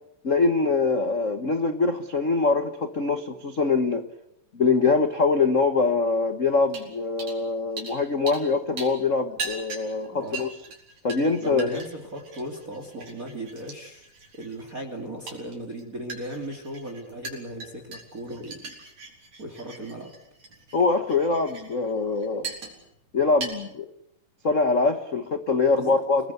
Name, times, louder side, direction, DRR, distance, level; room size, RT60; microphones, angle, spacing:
voice 1, 0.2-4.0 4.5-10.5 11.0-11.8 20.7-22.5 23.1-23.9 24.4-26.3, left 4 dB, 90° left, 8 dB, 0.6 m, -23 dB
sound 1, 6.7-6.9 7.2-7.4 7.8-8.5 8.8-23.0 23.3-23.5, right 3 dB, 55° right, 5.8 m, -40 dB
voice 2, 10.1-10.4 11.4-14.1 14.3-18.7 19.4-20.1 25.8-26.0, right 1 dB, 25° right, 4 dB, 2.9 m, -37 dB
29.0 x 19.5 x 8.1 m, 0.81 s
omnidirectional pair, 3.8 m